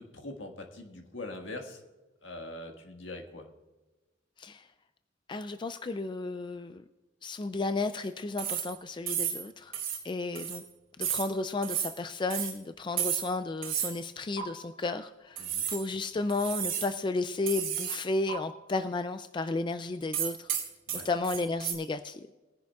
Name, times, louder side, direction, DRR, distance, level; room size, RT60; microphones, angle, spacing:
voice 1, 0.0-1.8 2.2-3.5 15.4-15.6 20.9-21.1, left 2 dB, 70° left, 3 dB, 1.6 m, -42 dB
voice 2, 5.3-6.8 7.2-9.7 10.0-10.6 11.0-20.5 20.9-22.3, left 3 dB, 25° left, 9 dB, 0.3 m, -33 dB
sound 1, 8.4-8.8 9.1-9.4 9.7-10.0 10.4-10.6 11.0-11.3 11.6-11.9 12.3-12.5 13.0-13.3 13.6-13.9 14.4-14.5 15.4-15.9 16.3-16.9 17.5-18.0 18.3-18.4 20.1-21.7, right 9 dB, 45° right, 2.8 m, -32 dB
21.0 x 10.5 x 2.3 m, 1.2 s
head